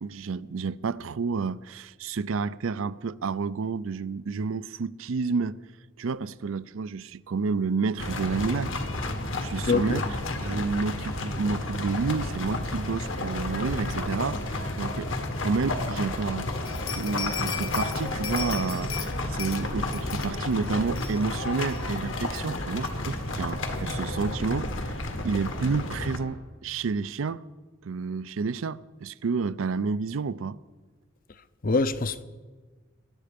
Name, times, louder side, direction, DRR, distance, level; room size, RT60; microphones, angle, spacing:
voice 1, 0.0-5.6 6.0-8.7 9.4-10.0 10.4-15.1 15.4-16.5 17.0-25.0 25.2-27.4 27.8-30.6, right 4 dB, 85° right, 0.5 m, -30 dB
sound 1, 8.0-26.2, left 2 dB, 70° left, 1.7 m, -31 dB
voice 2, 9.7-10.0 31.6-32.2, left 3 dB, 45° left, 0.6 m, -24 dB
sound 2, 16.7-19.1 19.4-19.6 19.9-20.3 20.6-20.7 21.0-21.4 21.7-21.8 22.3-22.4, left 8 dB, 90° left, 1.2 m, -36 dB
21.0 x 11.5 x 5.2 m
head